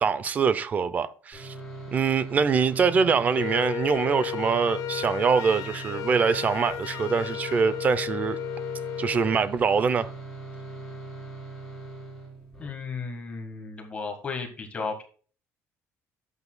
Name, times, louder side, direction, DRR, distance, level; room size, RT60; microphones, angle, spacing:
voice 1, 0.0-1.5 1.9-8.4 9.0-10.1, right 5 dB, 25° right, 0.5 m, -24 dB
sound 1, 1.3-12.7, right 3 dB, ahead, 4.1 m, -40 dB
Wind instrument woodwind instrument, 3.3-9.4, left 12 dB, 60° left, 0.7 m, -34 dB
voice 2, 12.6-15.0, left 4 dB, 20° left, 1.6 m, -34 dB
11.5 x 8.1 x 2.3 m
cardioid pair, 180°, 6 cm